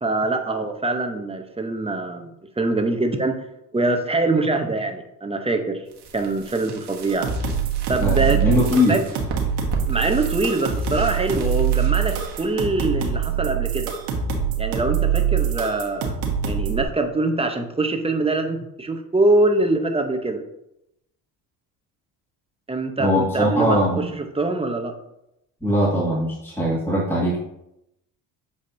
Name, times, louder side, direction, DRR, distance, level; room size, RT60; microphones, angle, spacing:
voice 1, 0.0-3.4 3.7-5.8 6.1-7.3 7.9-8.5 8.9-9.0 9.9-13.9 14.6-16.2 16.4-20.4 22.7-24.9, right 2 dB, 15° right, 5 dB, 0.9 m, -23 dB
sound 1, 5.8-13.6, right 6 dB, 55° right, 1.3 m, -36 dB
sound 2, 7.1-16.8, right 8 dB, 85° right, 1.5 m, -24 dB
voice 2, 8.0-9.0 23.0-24.0 25.6-27.4, left 1 dB, 5° left, -6 dB, 2.0 m, -21 dB
7.6 x 4.9 x 2.8 m, 0.82 s
cardioid pair, 90°, 46 cm